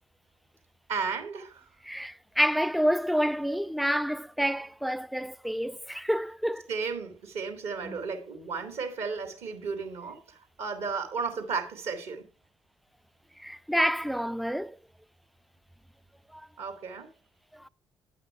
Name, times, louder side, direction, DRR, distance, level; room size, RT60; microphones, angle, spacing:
voice 1, 0.9-1.6 6.7-12.2 16.6-17.1, right 5 dB, 65° right, 2.1 m, -34 dB
voice 2, 1.8-6.7 7.8-8.0 13.4-14.8 16.3-16.5 17.5-17.7, equal, ahead, 0.4 m, -28 dB
9.7 x 5.8 x 4.6 m
hypercardioid pair, 40°, 12 cm